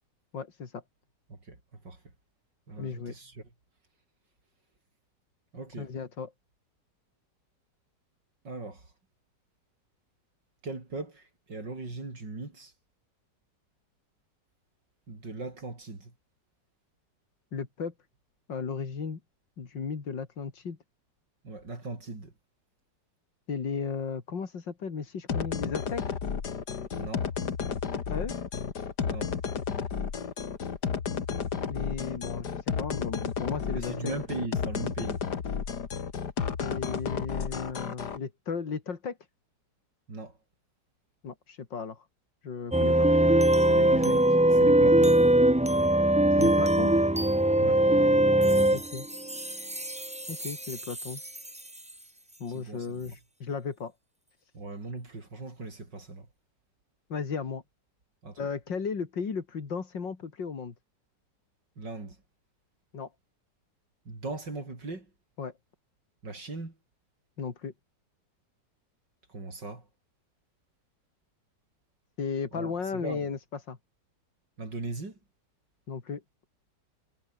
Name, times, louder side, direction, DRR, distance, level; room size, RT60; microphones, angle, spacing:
voice 1, 0.3-0.8 2.8-3.1 5.8-6.3 17.5-17.9 18.5-19.2 19.6-20.8 23.5-26.0 28.1-28.3 31.7-34.1 36.6-39.2 41.2-42.0 42.4-43.1 46.3-46.9 48.7-49.1 50.3-51.2 52.4-53.9 57.1-57.6 58.4-60.7 62.9-63.1 65.4-65.5 67.4-67.7 72.2-73.8 75.9-76.2, left 5 dB, 90° left, 3.2 m, -35 dB
voice 2, 2.7-3.4 5.5-5.9 8.4-8.9 10.6-12.7 15.1-16.1 21.4-22.3 27.0-27.3 29.0-29.3 33.7-35.2 40.1-40.4 43.6-45.2 47.6-47.8 52.5-53.0 54.5-56.3 58.2-58.5 61.8-62.2 64.1-65.1 66.2-66.7 69.3-69.9 72.5-73.3 74.6-75.2, right 3 dB, 75° right, 6.0 m, -39 dB
sound 1, 25.3-38.2, left 6 dB, 65° left, 2.4 m, -32 dB
sound 2, 42.7-51.6, right 1 dB, 10° right, 0.3 m, -22 dB
omnidirectional pair, 1.9 m